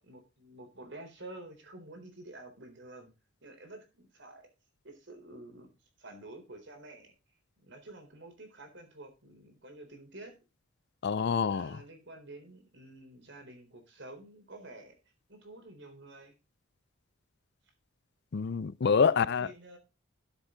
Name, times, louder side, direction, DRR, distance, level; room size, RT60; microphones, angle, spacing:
voice 1, 0.0-3.1 3.4-4.5 4.8-5.7 6.0-7.1 7.6-10.3 11.5-14.9 15.3-16.3 18.9-19.8, right 2 dB, 55° right, 3.9 m, -49 dB
voice 2, 11.0-11.8 18.3-19.5, left 6 dB, 55° left, 0.4 m, -27 dB
13.0 x 7.2 x 3.8 m
head